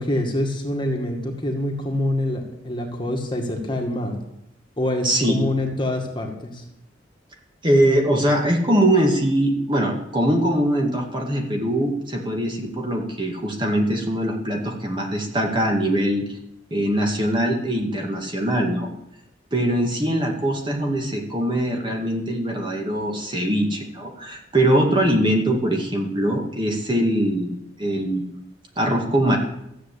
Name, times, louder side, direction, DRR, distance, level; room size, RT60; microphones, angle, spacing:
voice 1, 0.0-4.2 4.8-6.6, left 1 dB, 25° left, 2 dB, 2.0 m, -25 dB
voice 2, 5.0-5.4 7.6-16.4 16.7-18.9 19.5-28.3 28.8-29.4, right 1 dB, 25° right, 1 dB, 2.1 m, -22 dB
14.5 x 8.1 x 8.6 m, 0.81 s
head